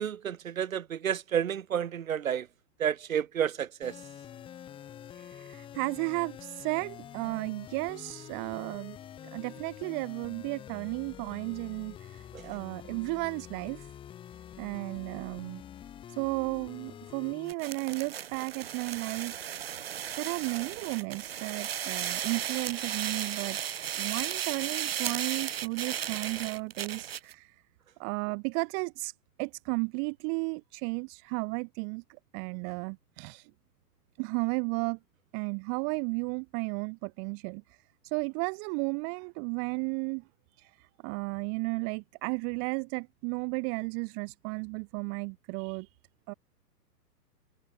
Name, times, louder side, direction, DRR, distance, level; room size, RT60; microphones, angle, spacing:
voice 1, 0.0-2.5 2.8-3.9 12.3-12.4, right 9 dB, 55° right, 4.3 m, -30 dB
sound 1, 3.8-17.5, left 10 dB, 10° left, 5.8 m, -47 dB
voice 2, 5.1-9.0 9.3-13.9 14.6-15.6 16.1-19.4 20.2-23.6 24.0-27.5 28.0-29.1 29.4-33.5 34.2-35.0 35.3-37.6 38.0-40.2 40.6-40.7 41.0-45.9 46.3-46.4, right 40 dB or more, 10° right, 1.0 m, -34 dB
sound 2, 17.5-27.3, right 9 dB, 40° right, 1.0 m, -35 dB
hypercardioid pair, 175°, 49 cm